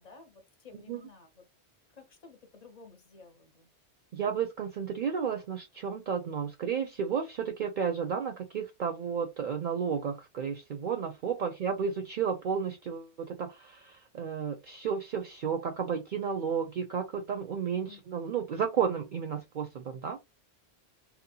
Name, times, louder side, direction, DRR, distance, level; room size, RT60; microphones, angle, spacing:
voice 1, 0.0-1.4 1.9-3.7 11.4-11.6 17.7-18.0, left 4 dB, 45° left, 0.7 m, -54 dB
voice 2, 4.1-20.2, right 7 dB, 55° right, 0.6 m, -32 dB
2.7 x 2.1 x 2.7 m
omnidirectional pair, 1.1 m